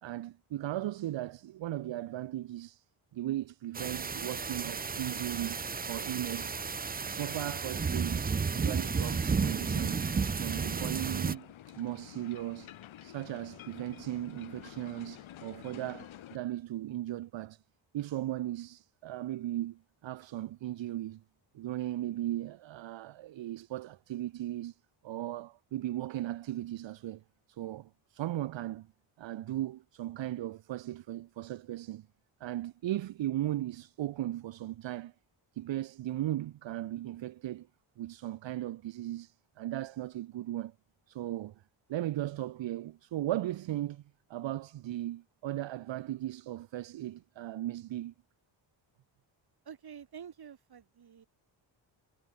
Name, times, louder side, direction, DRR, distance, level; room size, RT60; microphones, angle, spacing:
voice 1, 0.0-2.8 3.1-5.6 5.8-6.6 7.0-10.0 10.3-12.7 13.0-17.6 17.9-21.2 21.5-24.8 25.0-27.2 27.5-28.9 29.2-32.1 32.4-35.1 35.5-37.7 38.0-40.7 41.1-41.6 41.9-44.0 44.3-48.1, right 14 dB, 70° right, 0.7 m, -37 dB
sound 1, 3.7-11.4, right 5 dB, 20° right, 0.5 m, -33 dB
sound 2, 8.8-16.4, left 12 dB, 80° left, 1.6 m, -50 dB
voice 2, 49.7-51.3, right 8 dB, 50° right, 1.7 m, -48 dB
cardioid pair, 60°, 47 cm